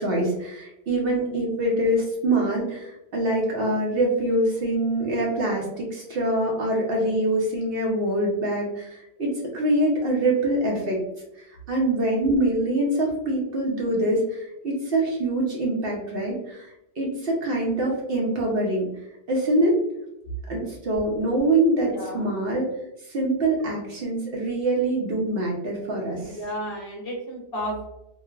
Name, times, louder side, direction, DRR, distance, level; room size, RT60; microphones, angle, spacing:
voice 1, 0.0-11.0 11.4-18.9 19.3-19.8 20.5-22.7 23.0-26.4, right 1 dB, 60° right, -2 dB, 0.7 m, -24 dB
voice 2, 21.8-22.3 26.2-27.9, equal, 60° left, -2 dB, 0.7 m, -33 dB
3.1 x 2.1 x 2.3 m, 0.90 s
omnidirectional pair, 1.3 m